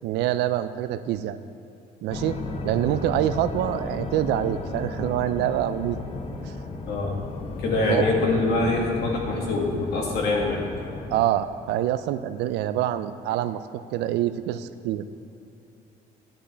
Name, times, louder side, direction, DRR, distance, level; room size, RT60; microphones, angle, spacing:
voice 1, 0.0-1.4 2.0-2.4 2.6-6.0 6.4-6.5 7.9-8.0 11.1-13.6 13.9-15.1, right 12 dB, 85° right, 12 dB, 0.4 m, -25 dB
sound 1, 2.1-11.2, left 3 dB, 35° left, 0.8 m, -34 dB
voice 2, 6.9-7.2 7.6-10.6, left 2 dB, 75° left, -1 dB, 2.1 m, -24 dB
13.0 x 9.9 x 3.4 m, 2.6 s
cardioid pair, 110°, 17 cm